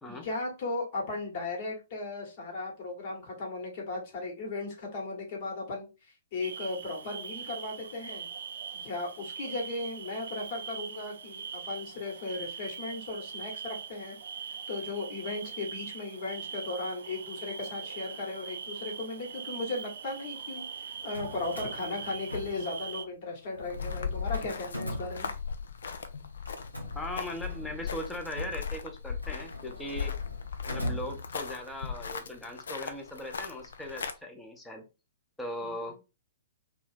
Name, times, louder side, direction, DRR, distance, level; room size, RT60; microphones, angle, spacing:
voice 1, 0.1-8.3 8.7-14.2 14.7-25.3 35.6-36.0, left 3 dB, 40° left, 1.2 m, -36 dB
sound 1, 6.4-23.0, right 7 dB, 55° right, 0.3 m, -42 dB
Drawer open or close, 20.9-23.1 23.4-25.8 26.4-31.7, left 1 dB, 90° left, 0.8 m, -41 dB
sound 2, 23.6-34.1, left 6 dB, 60° left, 0.4 m, -37 dB
voice 2, 26.9-30.2 30.7-34.8 35.4-36.0, left 1 dB, 5° left, 0.6 m, -39 dB
2.6 x 2.3 x 3.4 m
figure-of-eight pair, 115°, 0 cm